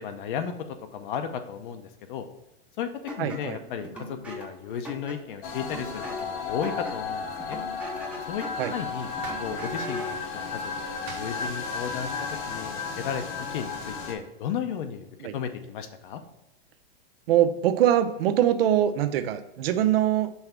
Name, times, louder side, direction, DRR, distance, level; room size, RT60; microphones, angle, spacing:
voice 1, 0.0-2.3 2.8-2.9 3.2-7.6 8.2-8.4 8.7-9.1 9.4-10.6 11.0-13.2 13.5-15.1 15.3-16.2, left 8 dB, 55° left, 7 dB, 0.7 m, -34 dB
sound 1, 3.1-10.2, left 1 dB, 5° right, 0.7 m, -40 dB
voice 2, 3.2-3.6 8.6-8.7 15.2-15.3 17.3-20.3, right 11 dB, 70° right, 10 dB, 0.7 m, -23 dB
sound 2, 5.4-14.1, left 4 dB, 30° left, 0.9 m, -34 dB
sound 3, 8.1-13.5, right 5 dB, 25° right, 1.1 m, -50 dB
5.7 x 3.3 x 5.8 m, 0.92 s
supercardioid pair, 160°, 31 cm